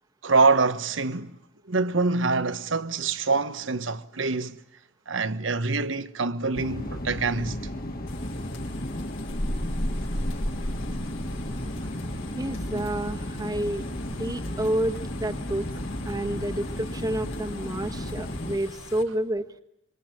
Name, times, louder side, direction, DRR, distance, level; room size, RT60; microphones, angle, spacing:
voice 1, 0.2-1.3 1.7-4.6 5.1-7.6, right 3 dB, 70° right, 1.2 m, -25 dB
sound 1, 6.5-18.6, left 1 dB, 50° left, 2.4 m, -34 dB
sound 2, 8.1-19.0, left 1 dB, 80° left, 4.8 m, -37 dB
voice 2, 12.4-13.8 14.2-15.7 16.0-19.5, right 1 dB, 20° right, 1.4 m, -29 dB
26.0 x 25.0 x 9.1 m
head